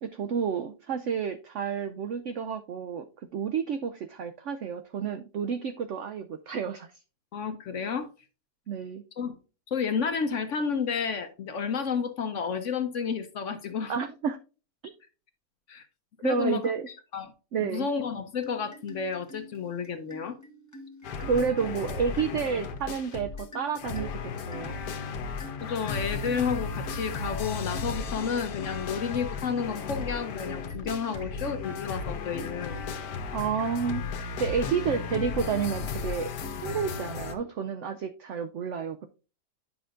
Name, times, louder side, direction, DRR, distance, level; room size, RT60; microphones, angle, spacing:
voice 1, 0.0-3.1 3.3-6.9 8.7-9.0 13.9-14.4 14.8-14.9 16.2-16.9 17.5-17.9 21.2-24.7 31.1-31.2 33.3-34.0 34.4-36.3 36.6-39.1, right 6 dB, 85° right, 9 dB, 0.6 m, -30 dB
voice 2, 7.3-8.1 9.2-9.4 9.7-13.9 15.7-15.9 16.2-17.3 17.6-20.4 25.6-32.8, left 6 dB, 60° left, 8 dB, 0.9 m, -31 dB
sound 1, 18.4-37.6, left 1 dB, 15° left, 0.9 m, -49 dB
sound 2, 21.0-23.5 23.7-37.3, left 5 dB, 80° left, 1.4 m, -35 dB
9.6 x 5.9 x 2.5 m, 0.33 s
omnidirectional pair, 1.8 m